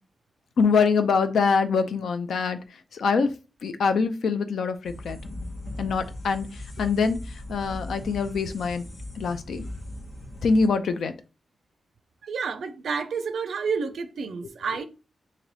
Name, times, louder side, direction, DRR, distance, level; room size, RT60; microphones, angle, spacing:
voice 1, 0.6-2.6 2.9-3.3 3.6-5.2 5.8-6.5 6.8-7.2 7.5-8.8 9.2-9.6 10.4-11.1, left 5 dB, 85° left, 0.5 m, -24 dB
sound 1, 4.8-10.7, left 1 dB, 60° left, 1.1 m, -38 dB
voice 2, 12.2-14.8, right 5 dB, 80° right, 0.4 m, -30 dB
3.3 x 2.7 x 3.9 m
cardioid pair, 55°, 0 cm